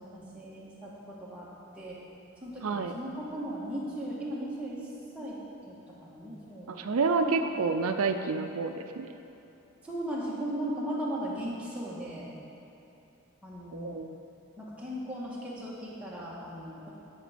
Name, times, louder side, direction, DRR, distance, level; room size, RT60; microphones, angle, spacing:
voice 1, 0.0-1.5 1.7-2.0 2.4-4.8 5.1-5.4 5.6-5.8 6.0-6.7 7.2-7.5 9.8-12.3 13.4-14.0 14.6-16.9, right 1 dB, 5° right, -7 dB, 1.7 m, -37 dB
voice 2, 2.6-3.0 6.7-9.1 13.7-14.2, right 4 dB, 90° right, 7 dB, 0.5 m, -29 dB
11.0 x 6.1 x 5.1 m, 2.9 s
head